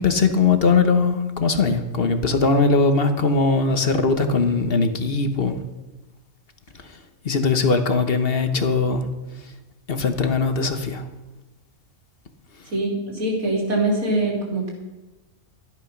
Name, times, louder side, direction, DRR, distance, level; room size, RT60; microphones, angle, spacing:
voice 1, 0.0-5.6 7.2-9.1 9.9-11.0, left 4 dB, 45° left, 7 dB, 1.3 m, -20 dB
voice 2, 12.7-14.7, right 2 dB, 85° right, -2 dB, 3.8 m, -23 dB
13.0 x 10.5 x 5.9 m, 1.1 s
omnidirectional pair, 1.4 m